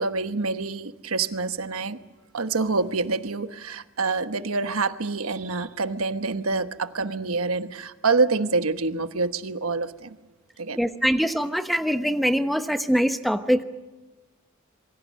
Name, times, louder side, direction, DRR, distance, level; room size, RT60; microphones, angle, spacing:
voice 1, 0.0-2.0 2.3-10.2 10.6-10.8, right 4 dB, 85° right, 9 dB, 1.2 m, -26 dB
voice 2, 10.7-13.6, equal, ahead, 8 dB, 1.1 m, -23 dB
26.5 x 23.5 x 6.5 m, 1.2 s
head